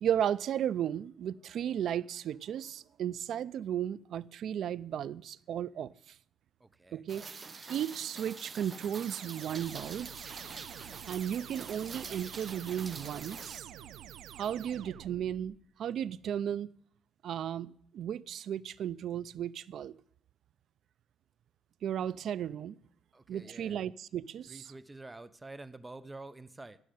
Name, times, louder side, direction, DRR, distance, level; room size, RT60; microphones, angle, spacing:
voice 1, 0.0-5.9 6.9-7.2 7.7-10.1 11.0-13.6 14.4-16.7 17.2-19.9 21.8-22.7 23.3-24.6, right 9 dB, 70° right, 0.5 m, -35 dB
voice 2, 6.6-7.1 23.1-23.9 24.5-26.8, right 2 dB, 20° right, 0.9 m, -48 dB
Rain, 7.1-13.6, right 4 dB, 35° right, 1.2 m, -46 dB
sound 1, 8.8-15.6, right 11 dB, 90° right, 0.9 m, -49 dB
17.0 x 6.5 x 9.2 m
cardioid pair, 90°, 0 cm